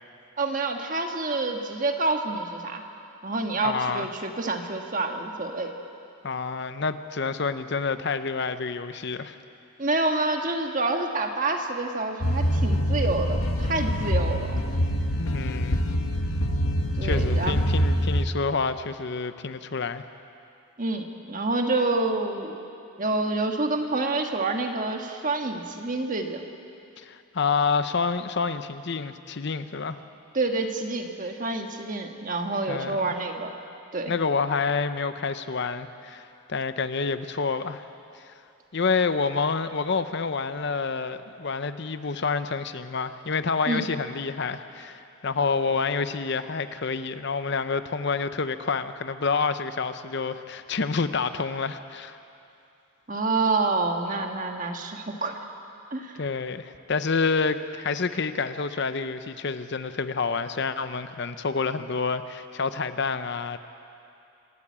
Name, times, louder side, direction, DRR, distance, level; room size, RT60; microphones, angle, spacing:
voice 1, 0.4-2.8 3.2-5.7 9.8-14.6 17.0-17.6 20.8-22.6 23.0-26.4 30.3-33.5 33.9-34.1 43.7-43.8 53.1-55.4 55.9-56.2, right 3 dB, 35° right, 4 dB, 1.5 m, -28 dB
voice 2, 3.6-4.1 6.2-9.4 15.2-15.8 17.0-20.0 27.0-30.0 32.7-33.1 34.1-37.9 38.1-38.2 38.7-52.2 56.2-63.6, left 4 dB, 50° left, 11 dB, 0.7 m, -28 dB
sound 1, 12.2-18.3, equal, 75° left, 1.4 m, -25 dB
26.0 x 13.0 x 8.7 m, 2.6 s
head